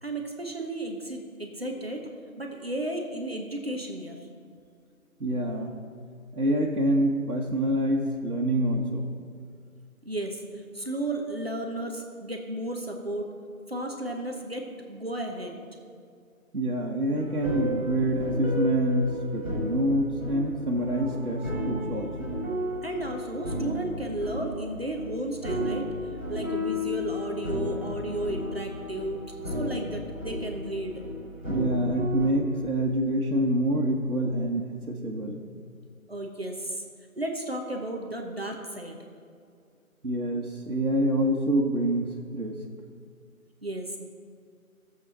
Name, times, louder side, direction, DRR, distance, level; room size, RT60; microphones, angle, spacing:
voice 1, 0.0-2.1 2.4-4.3 10.0-13.4 13.7-15.6 22.8-25.9 26.3-30.9 36.1-36.8 37.2-39.0 43.6-44.0, right 1 dB, 45° right, 2 dB, 1.0 m, -33 dB
voice 2, 5.2-5.8 6.3-9.1 16.5-22.4 31.5-35.5 40.0-42.5, right 1 dB, 80° right, -3 dB, 1.5 m, -26 dB
sound 1, 17.1-32.3, left 1 dB, 5° right, 2.8 m, -33 dB
15.0 x 7.6 x 4.2 m, 2.2 s
figure-of-eight pair, 170°, 43 cm